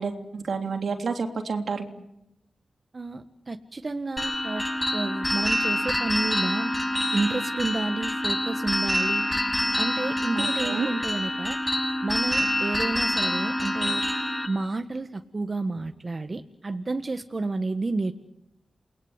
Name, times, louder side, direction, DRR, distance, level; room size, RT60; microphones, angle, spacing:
voice 1, 0.0-1.9 10.3-10.9, right 5 dB, 75° right, 5 dB, 3.3 m, -29 dB
voice 2, 2.9-4.7 4.9-6.7 7.1-9.2 9.8-11.6 12.0-14.0 14.5-18.1, right 3 dB, 45° right, 8 dB, 1.5 m, -30 dB
sound 1, 4.2-14.5, left 1 dB, 15° left, 6.5 m, -26 dB
29.5 x 20.5 x 8.3 m, 0.86 s
cardioid pair, 50°, 0 cm